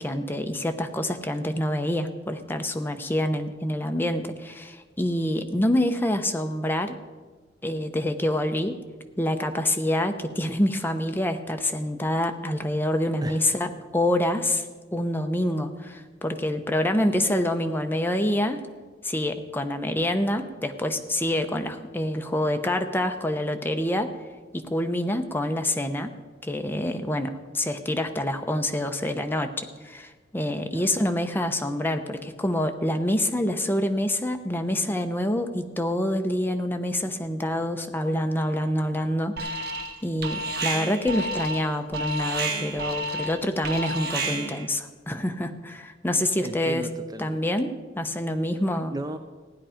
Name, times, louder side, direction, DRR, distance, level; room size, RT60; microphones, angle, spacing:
voice 1, 0.0-6.9 7.6-8.8 9.2-14.7 14.9-18.6 19.0-24.1 24.5-26.1 26.4-39.7 40.0-46.9 47.2-48.9, left 1 dB, 10° left, 6 dB, 0.8 m, -26 dB
voice 2, 13.2-13.6 30.7-30.8 46.4-47.4 48.9-49.2, right 1 dB, 20° right, 8 dB, 0.5 m, -35 dB
Alarm, 39.4-40.0 40.2-44.7, right 2 dB, 60° right, 1.4 m, -30 dB
15.5 x 10.0 x 5.0 m, 1.4 s
head